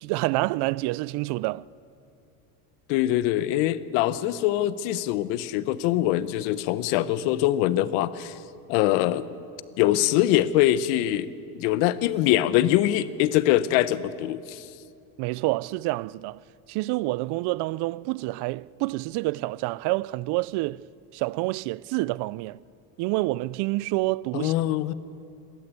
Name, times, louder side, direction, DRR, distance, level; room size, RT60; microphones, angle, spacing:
voice 1, 0.0-1.7 15.2-16.4 16.7-20.8 21.1-22.6 23.0-24.5, right 20 dB, 60° right, 0.5 m, -28 dB
voice 2, 2.9-8.4 8.7-9.3 9.8-11.3 11.5-14.7 24.3-24.9, left 13 dB, 75° left, 1.0 m, -23 dB
27.0 x 13.0 x 8.2 m
supercardioid pair, 115°, 46 cm